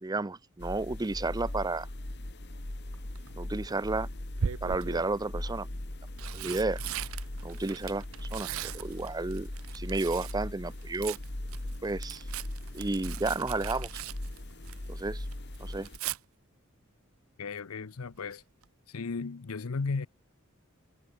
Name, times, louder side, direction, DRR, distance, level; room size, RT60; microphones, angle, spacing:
voice 1, 0.0-1.9 3.4-4.1 4.6-5.7 6.3-6.8 7.4-9.5 9.7-11.2 11.8-12.2 12.7-13.9 14.9-15.2 15.6-15.9, right 2 dB, 20° right, 0.6 m, -32 dB
sound 1, 0.6-16.0, left 1 dB, 50° left, 2.1 m, -39 dB
Tearing, 2.9-3.3 4.4-5.1 5.9-10.4 10.7-15.0 15.3-16.2 18.0-18.3 18.6-18.7, right 8 dB, 70° right, 0.5 m, -39 dB
voice 2, 17.4-18.4 18.9-20.1, left 4 dB, 80° left, 0.7 m, -35 dB
head